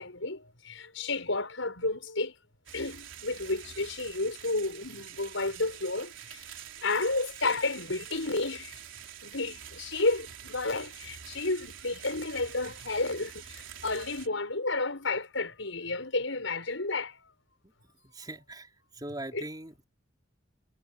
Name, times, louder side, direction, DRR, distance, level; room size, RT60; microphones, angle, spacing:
voice 1, 0.0-2.3 2.7-6.5 6.8-8.8 9.2-17.3 19.3-19.4, left 2 dB, 85° left, 6.0 m, -31 dB
sound 1, 2.7-14.3, right 9 dB, 85° right, 3.7 m, -46 dB
voice 2, 18.0-19.8, right 1 dB, 20° right, 4.3 m, -41 dB
head